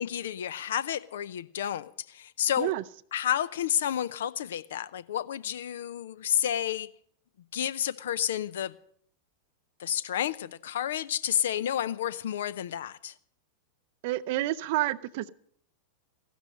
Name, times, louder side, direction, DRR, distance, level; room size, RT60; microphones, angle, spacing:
voice 1, 0.0-2.7 3.1-6.9 7.5-8.8 9.8-13.1, left 10 dB, 60° left, 0.6 m, -30 dB
voice 2, 14.0-15.3, right 16 dB, 50° right, 0.5 m, -29 dB
15.5 x 12.0 x 5.4 m
figure-of-eight pair, 90°, 0 cm